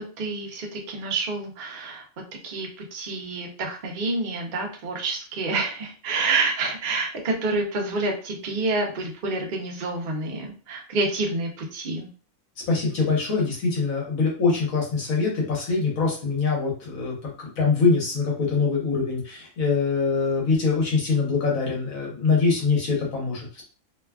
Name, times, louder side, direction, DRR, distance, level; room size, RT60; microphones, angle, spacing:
voice 1, 0.0-2.0 2.4-12.1, right 3 dB, 55° right, 0 dB, 0.5 m, -28 dB
voice 2, 12.7-17.1 17.6-23.6, left 4 dB, 70° left, -2 dB, 1.5 m, -23 dB
3.0 x 2.2 x 2.3 m, 0.39 s
omnidirectional pair, 1.5 m